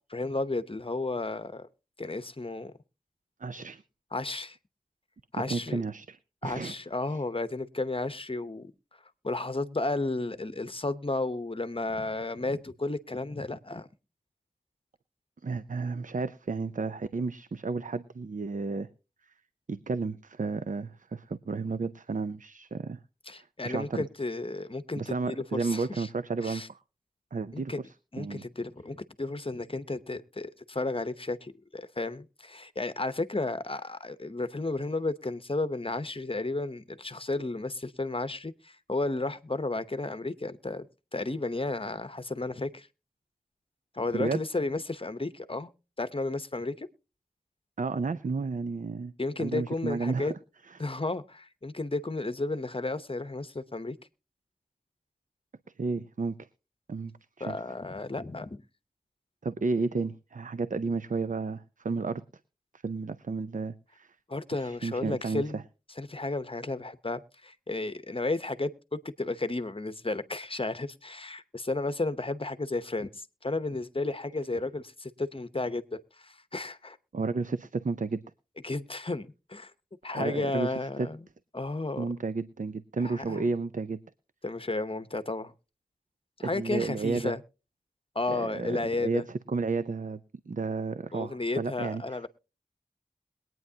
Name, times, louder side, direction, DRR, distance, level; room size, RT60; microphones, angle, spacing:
voice 1, 0.0-1.7 2.0-2.7 4.1-4.6 5.3-5.8 6.4-8.7 9.2-13.9 23.3-26.1 26.4-26.7 27.5-27.8 28.1-40.9 41.1-42.9 43.9-45.7 46.0-46.9 49.2-50.3 50.8-54.0 57.4-58.6 64.3-65.6 66.0-77.0 78.6-79.7 80.0-81.3 81.5-82.0 83.1-83.5 84.4-85.5 86.4-87.4 88.1-89.2 91.1-92.3, left 2 dB, 40° left, 0.8 m, -33 dB
voice 2, 3.4-3.8 5.5-6.8 15.4-18.9 19.2-19.3 19.7-23.0 23.3-24.1 25.0-26.8 27.3-28.5 44.1-44.4 47.8-49.1 49.4-50.3 50.7-50.8 55.8-56.4 56.9-57.1 57.5-57.6 59.4-62.2 62.7-64.2 64.6-65.6 77.1-78.2 80.1-81.1 82.0-84.0 86.5-87.4 88.3-92.2, right 4 dB, 65° right, 0.5 m, -32 dB
22.0 x 9.2 x 2.8 m
wide cardioid pair, 55°, 14 cm